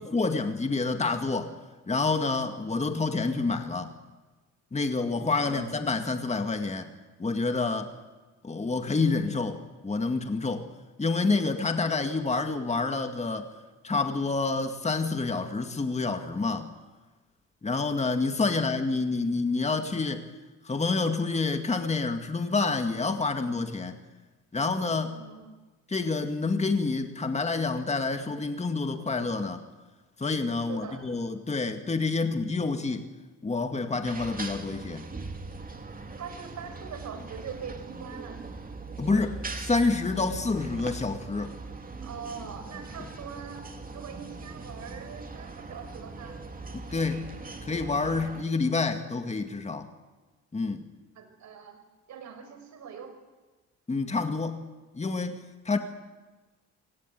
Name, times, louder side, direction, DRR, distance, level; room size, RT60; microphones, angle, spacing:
voice 1, 0.0-1.5 1.9-3.9 4.7-6.9 7.2-7.9 8.4-10.7 11.0-13.5 13.8-16.7 17.6-20.3 20.6-24.0 24.5-25.2 25.9-29.6 30.2-33.1 33.4-35.1 39.0-41.5 46.7-47.3 47.6-49.9 50.5-50.8 53.9-54.6 54.9-55.8, left 3 dB, 20° left, 6 dB, 2.1 m, -28 dB
voice 2, 5.4-5.8 25.1-25.5 30.6-31.0 35.9-38.4 42.0-46.4 51.2-51.8 52.1-53.2, right 6 dB, 70° right, 8 dB, 5.3 m, -42 dB
sound 1, 34.0-48.4, right 3 dB, 30° right, 2.6 m, -41 dB
26.0 x 18.5 x 9.3 m, 1.2 s
cardioid pair, 90°, 30 cm